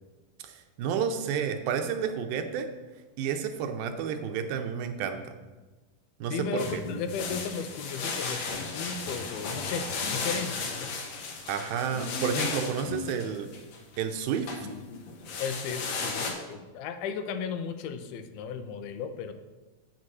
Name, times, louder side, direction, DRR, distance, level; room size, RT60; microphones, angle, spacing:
voice 1, 0.4-2.7 3.2-5.3 6.2-6.8 11.5-13.5 14.0-14.5, right 7 dB, 80° right, 6 dB, 2.4 m, -31 dB
voice 2, 6.3-11.0 15.4-19.3, left 6 dB, 90° left, 9 dB, 2.5 m, -35 dB
sound 1, 6.6-14.1 14.5-16.3, left 4 dB, 65° left, 2.0 m, -34 dB
8.4 x 6.5 x 6.1 m, 1.2 s
omnidirectional pair, 4.3 m